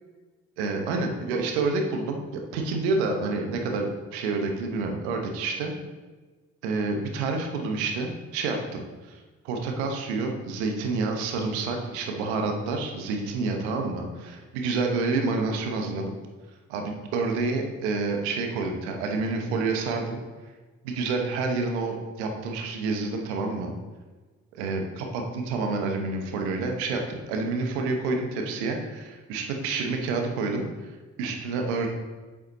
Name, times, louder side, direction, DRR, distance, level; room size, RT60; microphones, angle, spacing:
voice 1, 0.6-5.7 6.6-16.1 16.7-20.2 20.8-23.7 24.5-31.9, right 3 dB, 85° right, 3 dB, 1.1 m, -28 dB
7.7 x 7.3 x 4.1 m, 1.3 s
hypercardioid pair, 40°, 33 cm